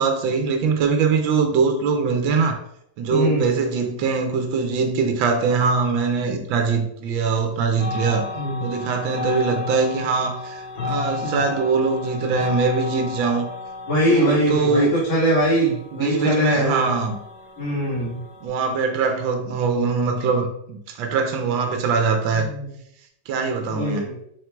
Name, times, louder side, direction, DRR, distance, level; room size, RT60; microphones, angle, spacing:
voice 1, 0.0-2.6 3.0-8.3 8.6-13.5 14.1-15.0 15.9-17.2 18.4-22.5 23.3-24.1, right 5 dB, 90° right, 1.4 m, -22 dB
voice 2, 3.1-3.5 8.3-8.6 11.2-11.5 13.9-16.9 17.6-18.2 22.3-22.7 23.7-24.1, right 1 dB, 80° left, 2.4 m, -22 dB
sound 1, 7.8-18.5, left 4 dB, 60° left, 2.1 m, -33 dB
5.3 x 4.4 x 2.2 m
omnidirectional pair, 2.1 m